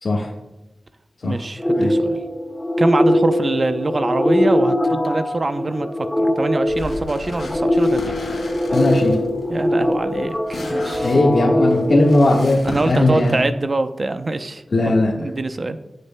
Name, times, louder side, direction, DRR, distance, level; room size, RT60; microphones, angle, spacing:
voice 1, 1.2-2.2 2.8-5.9 6.2-8.2 9.5-11.3 12.6-15.8, right 2 dB, 45° right, 9 dB, 0.6 m, -24 dB
sound 1, 1.6-12.9, left 1 dB, 15° left, 1.2 m, -21 dB
sound 2, 6.7-13.4, left 2 dB, 90° left, 2.7 m, -35 dB
voice 2, 8.7-9.2 11.0-13.3 14.7-15.1, left 2 dB, 65° left, -4 dB, 1.5 m, -17 dB
18.0 x 6.6 x 2.2 m, 0.98 s
wide cardioid pair, 75°, 0 cm